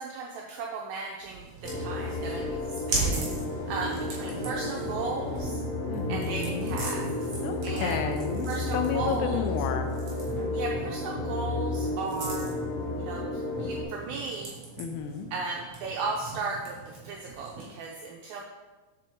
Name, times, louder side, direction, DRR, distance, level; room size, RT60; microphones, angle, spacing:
voice 1, 0.0-3.2 3.7-5.6 6.1-7.0 7.6-8.0 8.5-9.4 10.5-12.5 12.9-14.5 15.3-18.4, right 4 dB, 85° right, -1 dB, 2.1 m, -36 dB
sound 1, 1.2-17.8, right 3 dB, 45° right, 2.2 m, -38 dB
sound 2, 1.6-13.8, left 2 dB, 65° left, 3.1 m, -32 dB
voice 2, 5.9-6.8 7.4-9.9 14.8-15.3, left 7 dB, 80° left, 6 dB, 2.7 m, -32 dB
7.5 x 7.0 x 3.5 m, 1.3 s
omnidirectional pair, 4.9 m